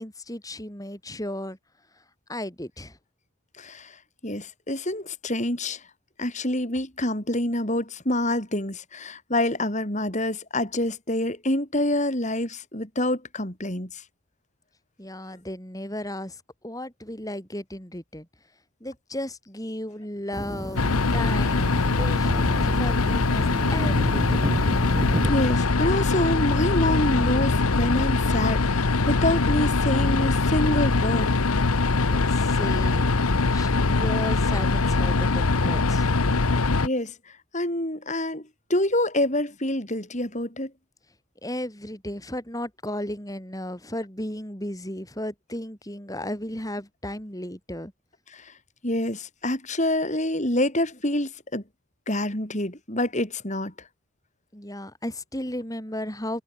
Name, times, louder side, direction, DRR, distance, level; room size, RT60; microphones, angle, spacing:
voice 1, 0.0-1.6 2.3-3.0 15.0-18.3 18.8-20.9 21.1-24.5 32.1-33.2 33.5-36.1 41.4-47.9 54.5-56.4, left 1 dB, 15° left, 5.7 m, -35 dB
voice 2, 3.6-3.9 4.2-5.8 6.2-13.9 25.3-31.3 36.8-37.1 37.5-40.7 48.3-48.4 48.8-51.6 52.1-53.7, left 1 dB, 30° left, 5.0 m, -26 dB
sound 1, 20.3-25.3, equal, 15° right, 7.2 m, -31 dB
sound 2, 20.8-36.9, left 3 dB, 80° left, 1.1 m, -22 dB
head